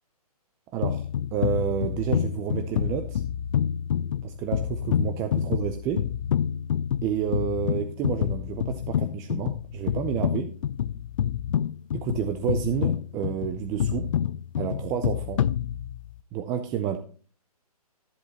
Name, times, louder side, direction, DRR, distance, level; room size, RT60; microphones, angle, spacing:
voice 1, 0.7-3.2 4.2-6.1 7.0-10.5 11.9-14.1 14.6-15.5 16.3-17.0, right 8 dB, 15° right, 6 dB, 0.5 m, -30 dB
sound 1, 0.8-16.2, left 9 dB, 55° left, 0.4 m, -28 dB
13.0 x 7.9 x 2.8 m, 0.42 s
hypercardioid pair, 145°, 20 cm